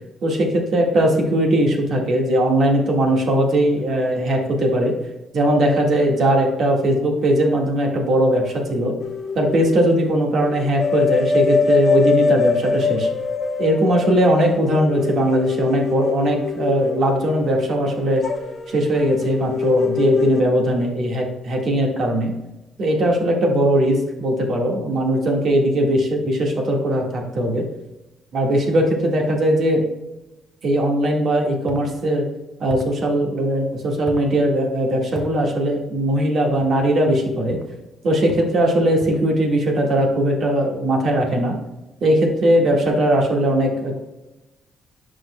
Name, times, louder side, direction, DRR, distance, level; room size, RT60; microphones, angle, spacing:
voice 1, 0.2-4.9 5.3-9.0 9.4-13.1 13.6-18.3 18.7-22.3 22.8-27.7 28.3-29.8 30.6-32.3 32.6-37.6 38.0-41.6 42.0-44.0, right 1 dB, 60° right, 1 dB, 1.6 m, -19 dB
sound 1, 9.0-10.1 10.4-20.4, left 5 dB, 40° left, 0.8 m, -23 dB
sound 2, 31.7-31.9 32.7-33.0 34.1-34.3 35.1-35.4 36.6-36.9 37.5-37.7 38.3-38.6 39.0-39.3, right 1 dB, 40° right, 1.1 m, -36 dB
10.5 x 5.3 x 2.2 m, 1.0 s
cardioid pair, 90°, 0 cm